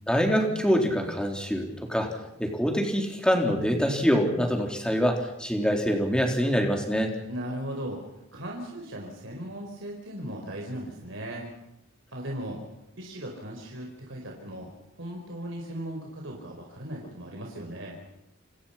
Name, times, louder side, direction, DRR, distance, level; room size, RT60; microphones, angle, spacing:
voice 1, 0.1-2.1 2.4-7.1, equal, 5° left, 2 dB, 3.8 m, -25 dB
voice 2, 7.3-8.0 8.3-11.5 12.1-12.6 13.0-14.7 15.0-18.0, right 1 dB, 60° right, 0 dB, 4.7 m, -37 dB
29.5 x 26.5 x 5.9 m, 0.89 s
head